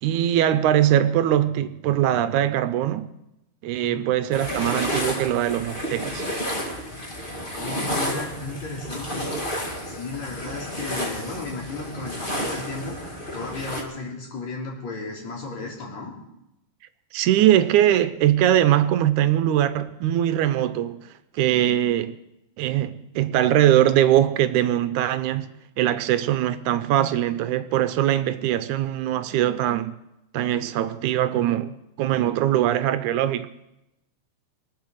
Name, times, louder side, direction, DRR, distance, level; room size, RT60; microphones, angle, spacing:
voice 1, 0.0-3.1 3.6-6.3 17.1-21.0 21.3-22.1 22.6-25.5 25.8-29.9 30.3-33.5, right 12 dB, 80° right, 2.1 m, -21 dB
sound 1, 4.3-13.8, equal, 20° left, 1.5 m, -31 dB
voice 2, 7.4-9.2 9.9-16.1, left 3 dB, 65° left, 4.7 m, -34 dB
23.5 x 8.1 x 6.5 m
omnidirectional pair, 3.6 m